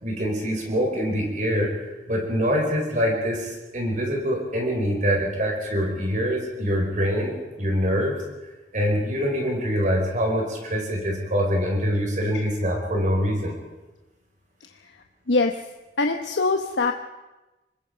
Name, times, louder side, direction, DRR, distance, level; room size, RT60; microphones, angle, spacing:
voice 1, 0.0-1.8 2.1-8.2 8.7-13.5, equal, 45° right, 0 dB, 4.9 m, -24 dB
voice 2, 16.0-16.9, left 3 dB, 85° left, 4 dB, 1.1 m, -22 dB
25.5 x 21.0 x 5.2 m, 1.1 s
head